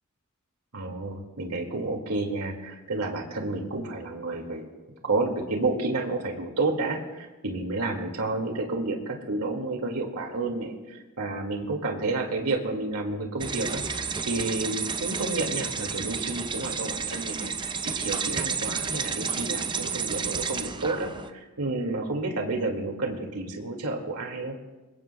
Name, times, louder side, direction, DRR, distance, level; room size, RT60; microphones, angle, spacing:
voice 1, 0.7-4.7 5.0-13.8 14.3-24.6, right 2 dB, 85° right, 3 dB, 2.0 m, -30 dB
sound 1, 13.4-21.3, right 5 dB, 20° right, 0.6 m, -31 dB
27.0 x 21.5 x 2.2 m, 1.2 s
head